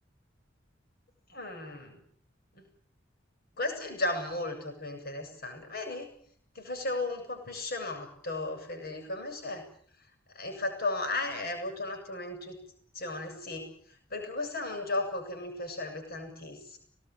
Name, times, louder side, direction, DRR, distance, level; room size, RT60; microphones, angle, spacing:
voice 1, 1.3-2.0 2.5-2.7 3.6-6.1 6.5-9.7 10.3-12.6 12.9-16.8, left 2 dB, 55° left, 5 dB, 7.9 m, -35 dB
25.5 x 19.0 x 9.3 m, 0.62 s
head